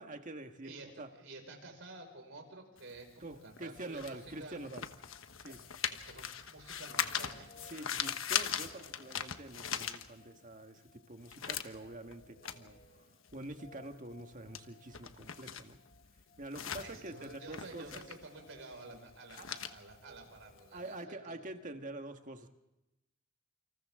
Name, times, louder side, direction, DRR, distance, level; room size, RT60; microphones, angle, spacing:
voice 1, 0.0-1.1 3.2-4.9 5.4-5.6 7.7-13.1 13.3-15.8 16.4-18.0 19.4-19.5 20.7-22.5, right 2 dB, 40° right, 6 dB, 1.7 m, -46 dB
voice 2, 0.6-4.6 5.5-7.5 8.8-8.9 16.8-21.4, right 2 dB, 70° right, 3 dB, 5.5 m, -51 dB
sound 1, 2.8-10.5 10.9-20.9, left 8 dB, 85° left, 1.3 m, -40 dB
sound 2, 4.3-21.7, left 2 dB, 40° left, 4.7 m, -62 dB
28.5 x 26.5 x 3.8 m, 0.95 s
head